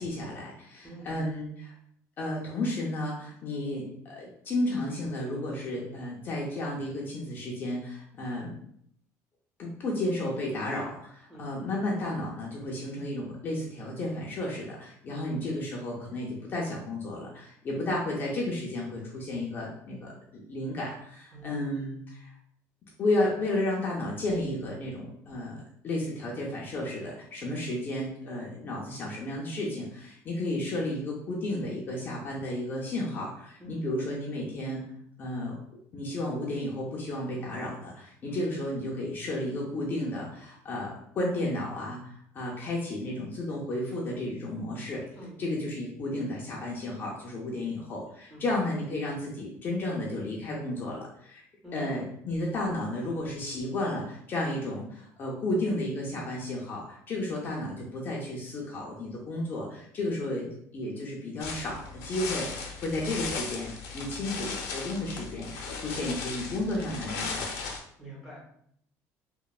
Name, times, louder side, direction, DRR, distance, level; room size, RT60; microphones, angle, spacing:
voice 1, 0.0-1.7 2.2-8.5 9.6-22.3 23.0-34.8 35.2-35.5 35.9-45.0 45.4-51.4 51.7-60.5 60.7-67.5, left 1 dB, 30° left, -3 dB, 0.4 m, -33 dB
voice 2, 0.8-1.2 11.3-11.5 15.1-15.7 21.3-21.7 33.6-33.9 38.2-38.4 45.1-45.7 48.3-48.4 51.6-51.9 68.0-68.5, right 2 dB, 5° right, -4 dB, 0.7 m, -45 dB
sound 1, 61.4-67.8, left 4 dB, 90° left, 0.5 m, -37 dB
3.0 x 2.0 x 2.3 m, 0.69 s
cardioid pair, 170°, 6 cm